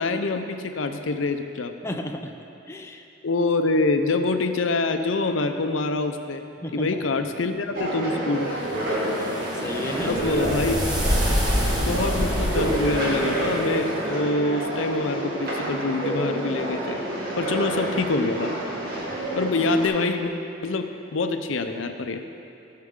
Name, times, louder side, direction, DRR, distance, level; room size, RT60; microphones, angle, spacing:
voice 1, 0.0-1.7 3.2-8.5 10.0-11.3 11.8-17.0 17.4-18.5 19.4-20.3 20.6-22.2, left 3 dB, 80° left, 7 dB, 0.6 m, -25 dB
voice 2, 1.8-2.4 2.7-3.0 6.6-7.0 9.1-10.4, left 1 dB, 15° left, 2 dB, 0.5 m, -34 dB
sound 1, 7.7-19.9, right 1 dB, 50° right, 2.2 m, -29 dB
sound 2, 8.6-13.9, equal, 20° right, 1.4 m, -27 dB
16.0 x 6.6 x 3.7 m, 2.7 s
head